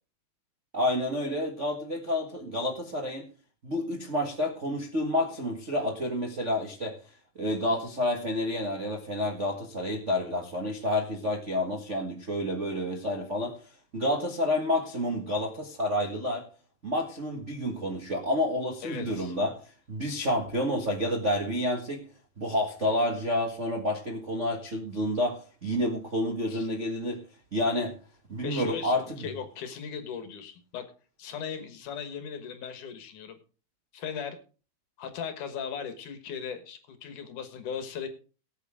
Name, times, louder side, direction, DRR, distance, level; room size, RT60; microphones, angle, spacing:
voice 1, 0.7-3.3 3.6-7.0 7.3-13.5 13.9-16.4 16.8-19.5 19.9-22.0 22.4-27.2 27.5-28.0 28.3-29.2, left 1 dB, 40° right, 0 dB, 1.0 m, -29 dB
voice 2, 18.8-19.3 26.5-26.7 28.4-30.9 31.2-33.4 33.9-34.4 35.0-38.1, left 7 dB, 65° left, 8 dB, 2.7 m, -38 dB
18.5 x 8.3 x 3.6 m, 0.36 s
omnidirectional pair, 4.1 m